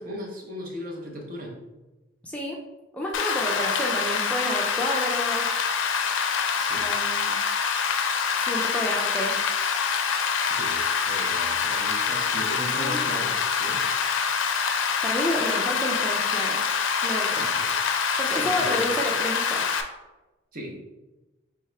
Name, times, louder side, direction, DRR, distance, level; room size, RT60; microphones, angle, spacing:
voice 1, 0.0-1.6 6.6-6.9 10.5-13.9 17.3-17.7 18.3-18.9 20.5-20.8, equal, 45° right, 0 dB, 0.7 m, -37 dB
voice 2, 2.2-2.6 2.9-5.6 6.7-7.4 8.3-9.4 12.6-13.0 15.0-16.6 17.0-17.5 18.2-19.7, equal, 5° left, -2 dB, 0.4 m, -30 dB
Rain, 3.1-19.8, left 6 dB, 75° left, 0.4 m, -25 dB
3.5 x 3.4 x 3.2 m, 1.1 s
head